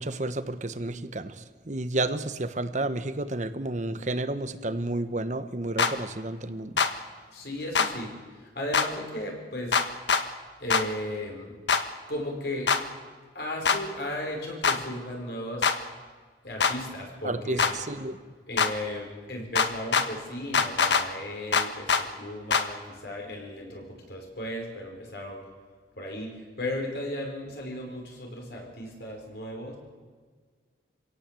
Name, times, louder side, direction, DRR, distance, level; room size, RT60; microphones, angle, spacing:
voice 1, 0.0-1.3 1.7-6.7 17.2-18.2, right 2 dB, 45° right, 11 dB, 1.1 m, -31 dB
sound 1, 5.8-5.9 6.8-6.9 7.8-7.9 8.7-8.9 9.7-10.2 10.7-10.8 11.7-11.8 12.7-12.8 13.7-13.8 14.6-14.8 15.6-15.8 16.6-16.7 17.6-17.7 18.6-18.7 19.6-20.1 20.5-21.0 21.5-22.0 22.5-22.7, left 5 dB, 85° left, 1.5 m, -22 dB
voice 2, 7.3-8.1 8.6-9.8 10.6-11.5 12.1-12.7 13.3-15.7 16.4-17.8 18.5-25.4 26.0-26.3 26.6-29.8, left 1 dB, 60° left, 1 dB, 5.5 m, -35 dB
27.0 x 17.0 x 7.7 m, 1.5 s
head